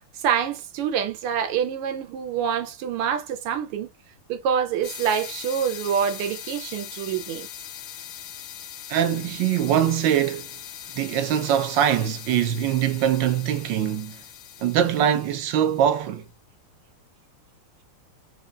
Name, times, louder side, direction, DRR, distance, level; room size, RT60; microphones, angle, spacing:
voice 1, 0.2-3.9 4.3-7.5, right 8 dB, 90° right, 1.7 m, -26 dB
sound 1, 4.8-16.1, left 10 dB, 75° left, 1.3 m, -40 dB
voice 2, 8.9-10.5 10.9-14.2 14.6-16.2, right 10 dB, 70° right, 1.2 m, -23 dB
4.5 x 2.5 x 2.3 m
omnidirectional pair, 2.4 m